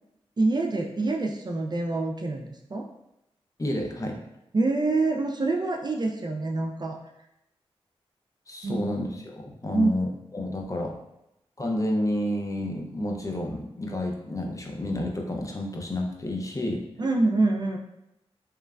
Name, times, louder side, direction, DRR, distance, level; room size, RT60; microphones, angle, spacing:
voice 1, 0.4-2.5 2.7-2.9 4.5-7.0 8.6-8.9 9.7-9.9 17.0-17.8, right 2 dB, 40° right, 1 dB, 0.4 m, -25 dB
voice 2, 3.6-4.2 8.5-11.0 11.6-16.8, left 1 dB, 30° left, 1 dB, 0.5 m, -30 dB
3.0 x 2.3 x 2.2 m, 0.85 s
cardioid pair, 40°, 11 cm